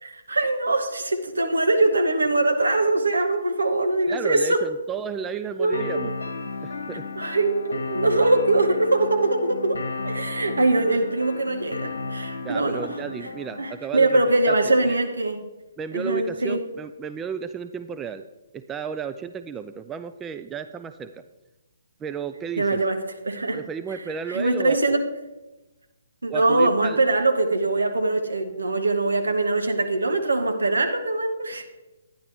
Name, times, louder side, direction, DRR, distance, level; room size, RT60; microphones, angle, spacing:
voice 1, 0.0-4.7 5.6-6.0 7.2-13.0 13.6-15.4 15.9-16.6 22.6-23.6 24.3-25.0 26.2-31.7, right 2 dB, 75° right, 5 dB, 1.2 m, -22 dB
voice 2, 4.1-6.1 6.6-7.0 12.4-15.0 15.8-18.2 18.5-21.2 22.0-22.8 23.5-25.0 26.3-27.0, right 6 dB, 15° right, 10 dB, 0.3 m, -33 dB
sound 1, 5.7-13.7, left 3 dB, 70° left, 1.2 m, -34 dB
10.5 x 10.0 x 3.5 m, 1.1 s
figure-of-eight pair, 130°, 0 cm